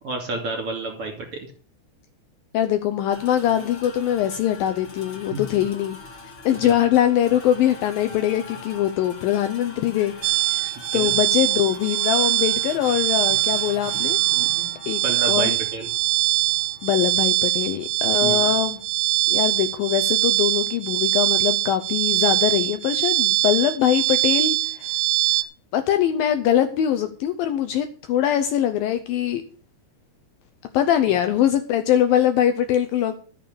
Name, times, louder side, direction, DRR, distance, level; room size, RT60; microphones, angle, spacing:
voice 1, 0.0-1.3 5.3-5.4 10.9-11.1 14.3-14.7 15.0-15.9 18.2-18.5, right 2 dB, 40° right, 2 dB, 3.3 m, -30 dB
voice 2, 2.5-6.0 6.4-10.1 10.4-14.2 14.9-15.0 15.3-15.6 16.8-18.8 19.3-25.0 25.3-25.4 25.7-29.4 30.7-33.2, left 11 dB, 75° left, 9 dB, 2.3 m, -22 dB
sound 1, 3.1-20.7, left 4 dB, 35° left, 2.7 m, -43 dB
sound 2, 10.2-25.4, right 17 dB, 75° right, 2.6 m, -22 dB
13.5 x 6.8 x 7.0 m, 0.42 s
omnidirectional pair, 4.7 m